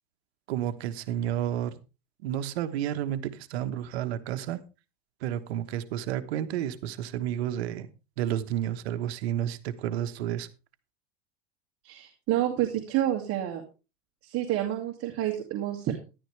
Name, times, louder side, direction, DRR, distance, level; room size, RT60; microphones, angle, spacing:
voice 1, 0.5-1.7 2.2-4.6 5.2-7.9 8.2-10.5, right 11 dB, 80° right, 11 dB, 1.3 m, -31 dB
voice 2, 11.8-13.6 14.2-16.0, right 12 dB, 45° right, 2 dB, 2.3 m, -29 dB
13.0 x 11.5 x 3.4 m, 0.30 s
supercardioid pair, 120°, 31 cm